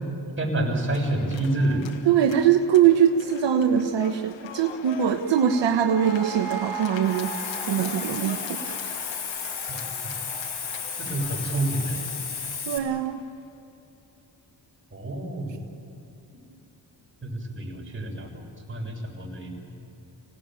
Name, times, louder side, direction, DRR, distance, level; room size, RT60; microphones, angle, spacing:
voice 1, 0.4-1.8 9.7-9.8 11.0-12.0 14.9-15.6 17.2-19.7, right 1 dB, 25° right, 1 dB, 6.5 m, -28 dB
sound 1, 0.9-13.3, left 8 dB, 80° left, 1.4 m, -42 dB
voice 2, 2.1-7.3 7.7-8.8 12.7-13.2, right 9 dB, 75° right, 6 dB, 1.2 m, -22 dB
sound 2, 4.9-10.0, right 10 dB, 55° right, 1.5 m, -40 dB
Hiss, 7.0-12.8, left 5 dB, 60° left, 3.1 m, -33 dB
26.0 x 18.0 x 9.0 m, 2.9 s
cardioid pair, 60°, 44 cm